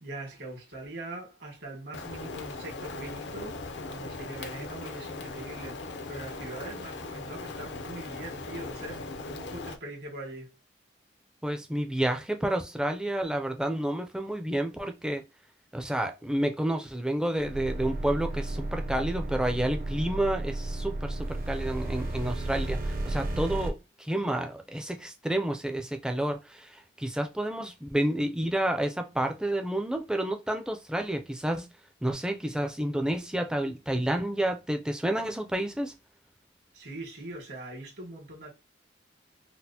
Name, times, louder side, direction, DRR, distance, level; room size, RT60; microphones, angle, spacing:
voice 1, 0.0-10.5 36.7-38.5, right 2 dB, 70° right, 1.5 m, -42 dB
Rain, 1.9-9.8, left 3 dB, 70° left, 0.5 m, -39 dB
voice 2, 11.4-15.2 15.7-31.7 32.0-35.9, right 1 dB, 5° right, 0.4 m, -30 dB
sound 1, 17.4-23.7, right 2 dB, 50° right, 0.6 m, -33 dB
4.1 x 2.1 x 2.7 m
head